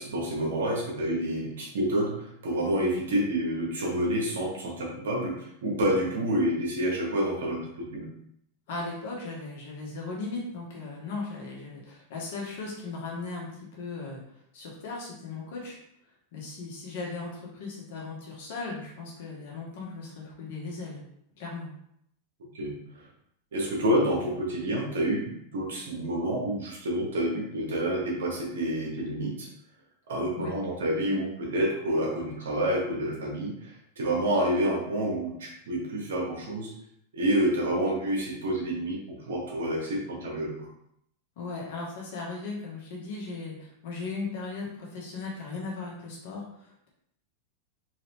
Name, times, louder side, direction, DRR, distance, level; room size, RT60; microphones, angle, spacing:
voice 1, 0.0-8.1 22.5-22.7 23.5-29.5 30.1-36.7 37.1-40.7, right 1 dB, 80° right, -1 dB, 1.3 m, -28 dB
voice 2, 8.7-14.2 14.5-15.7 16.3-21.0 21.4-21.7 30.4-30.5 41.4-46.9, left 3 dB, 70° left, -3 dB, 1.6 m, -37 dB
3.9 x 2.9 x 3.5 m, 0.75 s
hypercardioid pair, 110°, 0 cm